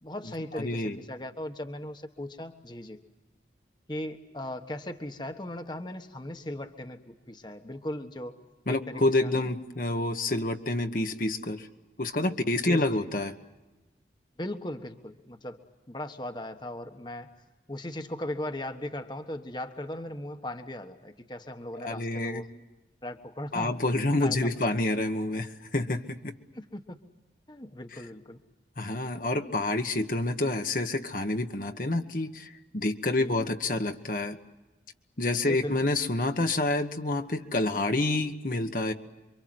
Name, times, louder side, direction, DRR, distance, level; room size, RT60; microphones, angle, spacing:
voice 1, 0.0-3.0 3.9-8.4 8.7-9.4 12.6-13.1 14.4-15.6 15.9-17.3 17.7-22.5 23.0-23.8 24.2-24.6 26.5-27.0 27.5-28.4 33.2-33.3 35.4-35.8, left 1 dB, 25° left, 6 dB, 1.3 m, -38 dB
voice 2, 0.5-1.0 8.7-11.7 12.0-13.4 21.7-22.4 23.5-26.3 28.8-34.4 35.2-38.9, left 2 dB, 50° left, 5 dB, 1.3 m, -28 dB
28.0 x 24.5 x 7.8 m, 1.1 s
head